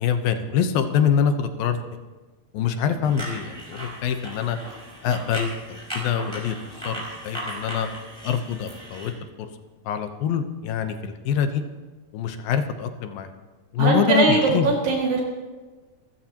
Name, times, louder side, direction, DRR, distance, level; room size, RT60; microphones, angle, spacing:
voice 1, 0.0-1.8 2.5-4.6 5.0-6.6 6.8-7.9 8.2-9.1 9.4-9.5 9.9-11.6 12.1-13.3 13.7-14.7, left 8 dB, 80° left, 7 dB, 2.8 m, -25 dB
sound 1, 3.0-9.1, right 1 dB, 5° right, 5.0 m, -37 dB
voice 2, 13.8-15.2, right 3 dB, 70° right, -3 dB, 3.9 m, -20 dB
27.0 x 15.0 x 2.9 m, 1.3 s
omnidirectional pair, 4.1 m